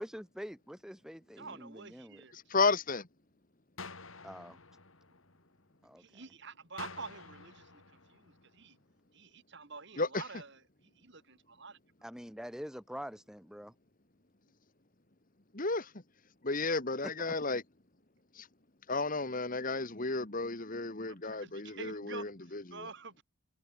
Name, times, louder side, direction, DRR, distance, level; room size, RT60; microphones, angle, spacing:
voice 1, 0.0-2.2 4.2-4.5 5.8-6.2 12.0-13.7 17.0-17.1, equal, 5° right, 3.1 m, -45 dB
voice 2, 1.4-2.3 6.0-7.8 8.1-8.8 9.1-10.6 11.0-11.8 21.1-22.3 22.7-23.2, right 4 dB, 55° right, 2.8 m, -48 dB
voice 3, 2.3-3.1 10.0-10.2 15.5-15.9 16.4-17.6 18.4-18.5 18.9-22.9, left 3 dB, 40° left, 2.0 m, -33 dB
sound 1, 3.8-5.8 6.8-8.8, left 4 dB, 70° left, 4.1 m, -50 dB
head